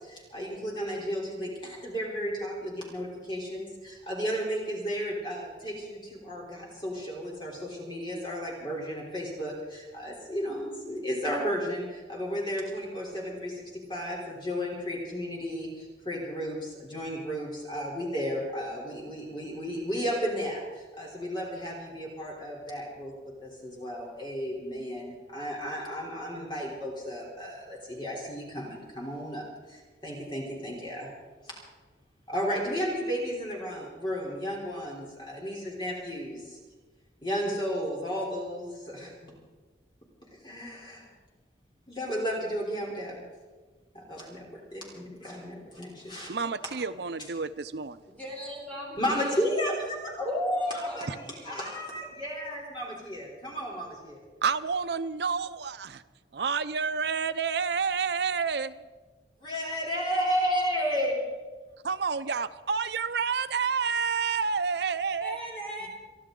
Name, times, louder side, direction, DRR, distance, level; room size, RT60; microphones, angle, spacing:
voice 1, 0.0-23.1 23.4-31.1 31.4-31.5 32.3-36.6 37.2-39.3 40.4-41.0 41.9-43.2 43.9-46.3 49.0-54.2 59.4-61.2, equal, 25° left, -3 dB, 3.5 m, -33 dB
voice 2, 46.3-48.0 51.1-51.2 54.4-56.0 56.3-58.9 61.8-65.4, right 5 dB, 65° right, 13 dB, 0.6 m, -29 dB
voice 3, 48.1-49.5 50.2-51.1 51.3-51.8 65.2-65.9, equal, 10° left, -3 dB, 3.5 m, -41 dB
28.5 x 11.0 x 3.8 m, 1.3 s
head